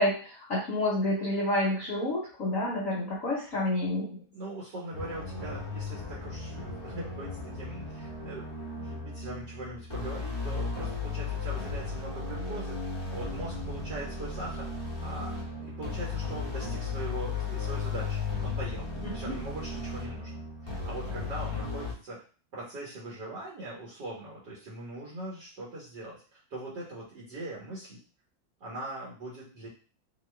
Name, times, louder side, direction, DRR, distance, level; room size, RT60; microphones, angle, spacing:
voice 1, 0.0-4.2 19.0-19.3, left 1 dB, 55° left, -4 dB, 1.0 m, -29 dB
voice 2, 4.3-12.8 13.1-14.7 15.0-18.9 19.1-22.2 22.5-28.0 28.6-29.7, right 2 dB, 60° right, -5 dB, 1.6 m, -41 dB
sound 1, 4.9-21.9, left 4 dB, 40° left, 0.3 m, -35 dB
3.1 x 3.0 x 3.2 m, 0.38 s
omnidirectional pair, 2.2 m